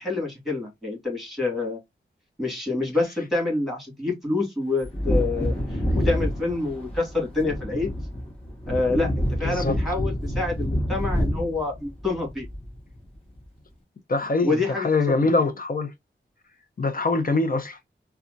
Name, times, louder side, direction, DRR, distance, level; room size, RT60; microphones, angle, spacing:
voice 1, 0.0-1.8 2.4-7.9 8.7-12.5 14.4-14.9, left 3 dB, ahead, 2.1 m, -27 dB
Wind / Thunder, 4.8-13.1 13.4-13.5, equal, 30° left, 2.2 m, -27 dB
voice 2, 9.4-9.8 14.1-15.9 16.8-17.8, left 3 dB, 45° left, 0.7 m, -23 dB
4.1 x 2.3 x 2.6 m
wide cardioid pair, 85°, 21 cm